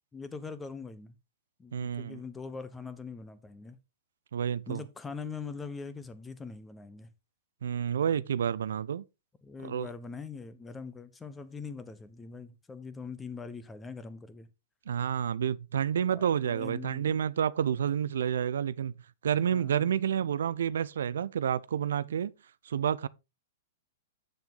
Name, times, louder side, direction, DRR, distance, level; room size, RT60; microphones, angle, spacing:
voice 1, 0.1-1.1 1.6-3.8 4.7-7.1 9.4-14.5 16.1-17.1 17.8-17.9 19.4-19.9 20.2-20.3, left 5 dB, 15° left, 1.0 m, -42 dB
voice 2, 1.7-2.2 4.3-4.8 7.6-9.0 9.6-9.9 14.9-18.9 19.2-22.3 22.7-23.1, right 8 dB, 70° right, 0.4 m, -29 dB
7.9 x 6.9 x 3.8 m
hypercardioid pair, 110°, 0 cm